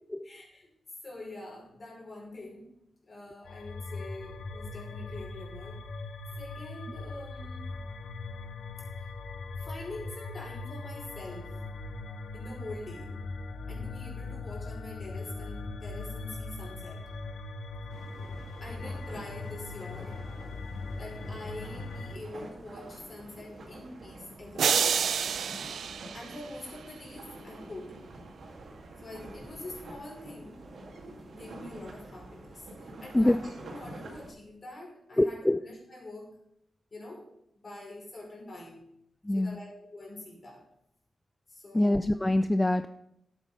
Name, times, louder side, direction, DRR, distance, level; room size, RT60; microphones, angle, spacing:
voice 1, 0.2-0.7 1.0-2.7 3.0-6.1 6.4-7.6 9.6-11.5 12.3-13.1 13.7-17.0 18.6-20.1 21.0-25.0 26.1-28.0 29.0-30.6 31.1-36.3 36.9-37.3 37.5-38.8 39.3-40.6 41.5-42.0, left 2 dB, 45° left, -1 dB, 5.0 m, -45 dB
sound 1, 3.5-22.2, left 3 dB, 85° left, 1.0 m, -40 dB
sound 2, 17.9-34.3, right 2 dB, 75° right, 2.4 m, -47 dB
sound 3, 24.6-26.9, right 7 dB, 90° right, 0.4 m, -29 dB
voice 2, 35.2-35.6 39.2-39.6 41.7-42.9, left 1 dB, 15° left, 11 dB, 0.4 m, -24 dB
12.0 x 8.2 x 5.5 m, 0.78 s
wide cardioid pair, 95°, 0 cm